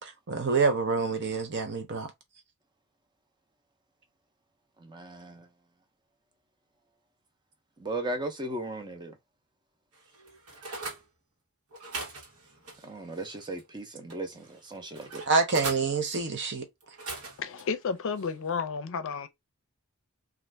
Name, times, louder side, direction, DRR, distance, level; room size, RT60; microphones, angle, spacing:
voice 1, 0.0-2.1 15.3-16.6, right 4 dB, 55° right, 0.8 m, -27 dB
voice 2, 4.8-5.5 7.8-9.2 12.8-15.2, right 1 dB, 20° right, 0.6 m, -36 dB
sound 1, 9.9-11.0 11.7-13.6 14.1-15.9 16.8-17.6 18.1-18.4, right 3 dB, 85° right, 1.2 m, -40 dB
voice 3, 17.4-19.3, left 5 dB, 60° left, 0.5 m, -32 dB
2.5 x 2.4 x 3.3 m
head